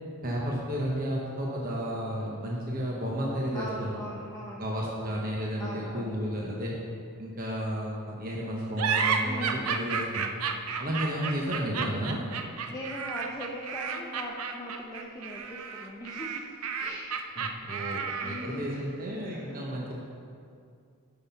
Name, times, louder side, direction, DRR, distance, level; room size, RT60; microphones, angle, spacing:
voice 1, 0.2-4.0 4.6-6.8 7.2-10.2 10.8-12.2 17.4-19.9, equal, 40° right, -3 dB, 1.0 m, -32 dB
voice 2, 3.5-4.7 5.6-6.6 9.2-9.8 12.7-17.1 18.2-18.8 19.3-19.6, equal, 15° left, -4 dB, 0.6 m, -40 dB
sound 1, 8.8-18.6, right 6 dB, 85° right, 0.6 m, -32 dB
7.8 x 5.8 x 5.7 m, 2.4 s
head